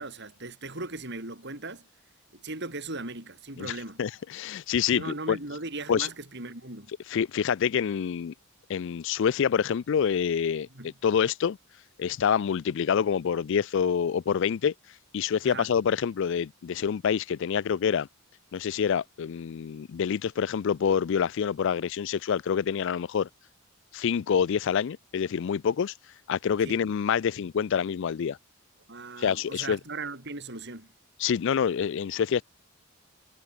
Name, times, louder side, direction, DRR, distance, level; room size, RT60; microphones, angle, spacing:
voice 1, 0.0-1.9 2.3-4.0 4.9-6.9 10.7-10.9 15.4-15.7 26.6-26.8 28.9-30.9, right 3 dB, 55° right, 5.7 m, -38 dB
voice 2, 3.6-5.4 5.9-6.1 7.1-8.3 8.7-11.6 12.0-14.7 15.1-18.1 18.5-23.3 23.9-25.9 26.3-28.4 29.2-29.8 31.2-32.4, left 7 dB, 60° left, 0.3 m, -27 dB
head